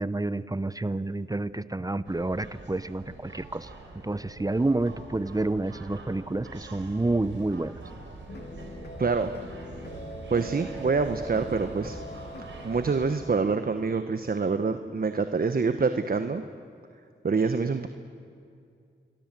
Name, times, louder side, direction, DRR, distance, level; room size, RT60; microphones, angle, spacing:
voice 1, 0.0-3.7 4.0-7.8, right 2 dB, 20° right, 15 dB, 0.8 m, -29 dB
sound 1, 2.0-13.1, right 3 dB, 80° right, 4.2 m, -44 dB
sound 2, 8.3-13.4, right 1 dB, 60° left, 3.5 m, -42 dB
voice 2, 9.0-9.3 10.3-12.0 12.6-16.4 17.2-17.9, right 4 dB, 50° right, 9 dB, 1.2 m, -26 dB
27.0 x 23.0 x 7.7 m, 2.4 s
cardioid pair, 45°, 20 cm